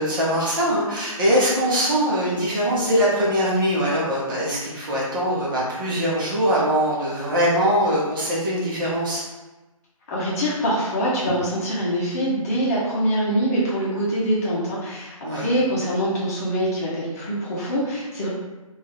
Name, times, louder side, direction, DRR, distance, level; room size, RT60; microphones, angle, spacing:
voice 1, 0.0-9.2 15.2-15.5, equal, 35° right, -6 dB, 1.3 m, -22 dB
voice 2, 10.1-18.3, equal, 25° left, -6 dB, 0.9 m, -24 dB
5.0 x 2.7 x 3.4 m, 1.1 s
figure-of-eight pair, 145°, 18 cm